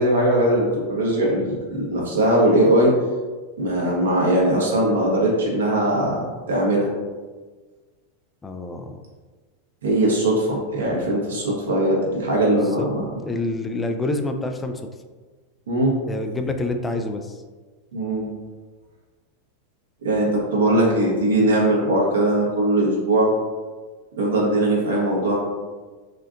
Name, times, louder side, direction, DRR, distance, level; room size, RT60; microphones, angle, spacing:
voice 1, 0.0-2.9 3.6-6.9 9.8-13.0 15.7-16.0 17.9-18.3 20.0-23.3 24.2-25.4, right 1 dB, 90° right, -3 dB, 1.1 m, -20 dB
voice 2, 8.4-9.0 12.8-12.9 13.2-14.8 16.1-17.4 21.4-21.6, left 2 dB, 15° left, 6 dB, 0.3 m, -27 dB
4.2 x 2.4 x 2.5 m, 1.4 s
hypercardioid pair, 110°, 0 cm